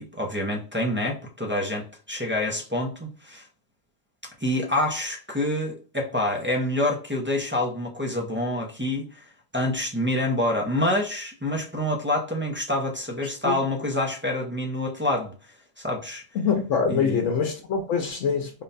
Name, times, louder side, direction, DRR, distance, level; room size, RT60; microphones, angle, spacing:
voice 1, 0.0-3.4 4.4-9.1 9.5-15.3 15.8-16.2 16.9-17.2, left 1 dB, 15° right, 0.4 m, -27 dB
voice 2, 16.3-18.5, left 6 dB, 85° left, 1.0 m, -24 dB
3.8 x 2.2 x 3.9 m
omnidirectional pair, 1.3 m